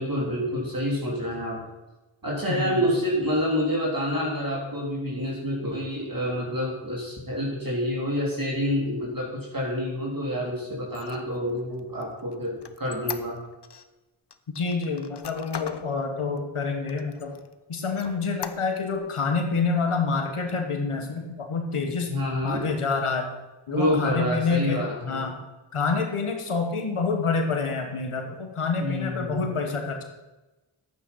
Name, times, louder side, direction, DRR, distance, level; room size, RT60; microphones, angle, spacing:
voice 1, 0.0-1.6 2.2-13.4 22.1-22.6 23.7-25.2 28.8-29.5, equal, 45° right, -3 dB, 3.7 m, -28 dB
voice 2, 2.5-2.9 14.5-17.3 17.7-22.1 22.4-23.3 23.7-25.4 25.7-30.0, left 4 dB, 90° left, 4 dB, 1.4 m, -27 dB
Squeak, 10.8-13.9 14.3-15.9 16.4-16.5 16.9-17.5 17.9-19.0, left 7 dB, 55° left, 0.9 m, -39 dB
11.5 x 8.9 x 5.6 m, 1.1 s
cardioid pair, 45°, 49 cm